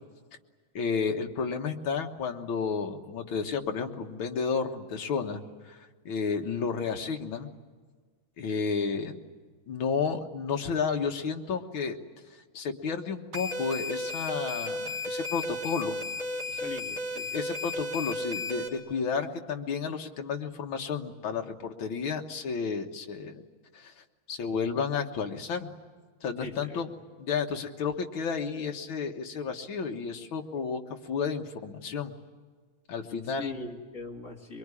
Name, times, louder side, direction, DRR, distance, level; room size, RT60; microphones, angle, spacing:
voice 1, 0.8-5.4 5.7-5.8 6.1-7.5 8.4-9.2 9.7-12.0 12.5-15.9 17.3-23.4 23.7-23.9 24.3-25.7 26.2-26.9 27.2-30.8 31.1-32.1 32.9-33.5, left 5 dB, 65° left, 3 dB, 2.2 m, -31 dB
sound 1, 13.3-18.7, left 2 dB, 35° right, 3.4 m, -34 dB
voice 2, 16.5-17.3 26.4-26.9 33.4-34.6, left 3 dB, 35° left, 0 dB, 2.8 m, -40 dB
23.5 x 23.0 x 9.8 m, 1.5 s
omnidirectional pair, 2.4 m